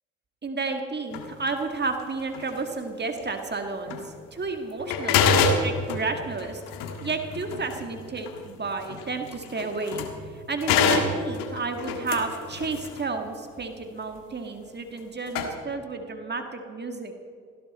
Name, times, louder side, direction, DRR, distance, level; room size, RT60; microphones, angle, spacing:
voice 1, 0.4-6.6 7.0-10.0 10.3-17.1, right 4 dB, 30° right, 5 dB, 1.8 m, -32 dB
sound 1, 1.1-1.3 2.3-2.6 3.2-3.3 3.9-4.1 4.4-4.5 4.8-10.3 10.6-13.1 15.0-15.1 15.3-15.5, left 5 dB, 80° left, 1.8 m, -27 dB
18.0 x 16.0 x 4.2 m, 2.2 s
supercardioid pair, 65°, 34 cm